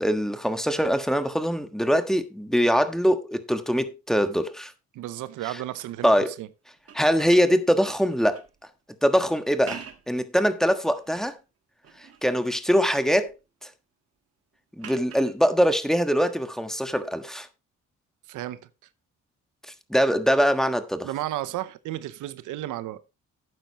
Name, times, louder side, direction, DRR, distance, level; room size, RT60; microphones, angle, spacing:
voice 1, 0.0-4.7 5.5-5.6 6.0-6.3 6.9-8.4 9.0-11.4 12.0-13.3 13.6-13.7 14.8-17.5 19.7-21.1, equal, ahead, 1.4 m, -23 dB
voice 2, 4.9-6.1 6.4-6.5 18.3-18.6 21.0-23.0, right 14 dB, 85° right, 0.8 m, -33 dB
sound 1, 6.8-8.6 9.5-10.2 10.7-11.3 11.8-12.3 12.6-13.3 14.8-15.4 17.1-17.3, right 7 dB, 50° right, 1.6 m, -44 dB
12.0 x 9.1 x 3.0 m
cardioid pair, 90°, 30 cm